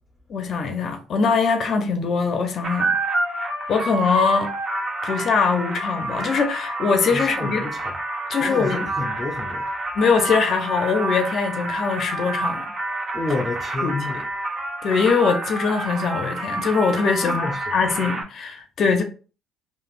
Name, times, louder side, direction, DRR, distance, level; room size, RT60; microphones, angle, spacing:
voice 1, 0.3-2.9 3.7-4.5 5.0-7.6 8.3-8.9 9.9-12.7 13.8-14.0 14.8-19.0, left 5 dB, 55° left, 0.5 m, -22 dB
sound 1, 2.6-18.2, right 2 dB, 50° right, 0.7 m, -28 dB
voice 2, 7.1-8.0 8.4-9.7 13.1-14.2 17.2-17.7, left 3 dB, 5° left, 0.7 m, -30 dB
3.2 x 2.0 x 2.4 m
supercardioid pair, 85°, 0 cm